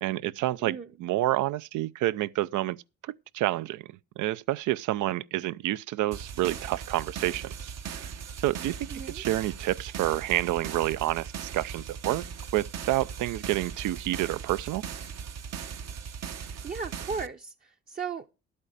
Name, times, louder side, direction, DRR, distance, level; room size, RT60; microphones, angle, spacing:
voice 1, 0.0-2.8 3.0-3.9 4.2-8.1 8.4-12.2 12.5-14.8, right 15 dB, 80° right, 0.5 m, -29 dB
sound 1, 6.1-17.3, right 7 dB, 60° right, 0.9 m, -39 dB
voice 2, 8.9-9.2 16.4-18.3, right 5 dB, 30° right, 0.7 m, -37 dB
11.5 x 8.7 x 5.0 m
cardioid pair, 90°, 30 cm